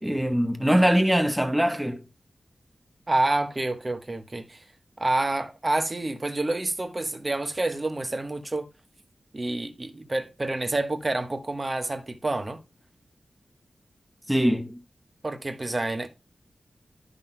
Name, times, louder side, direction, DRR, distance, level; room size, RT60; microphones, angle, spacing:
voice 1, 0.0-2.0 14.3-14.8, equal, 5° right, 1.0 m, -22 dB
voice 2, 3.1-4.7 5.0-8.7 9.3-12.6 15.2-16.1, right 2 dB, 25° right, 1.1 m, -28 dB
13.0 x 5.7 x 2.2 m
wide cardioid pair, 135°, 0 cm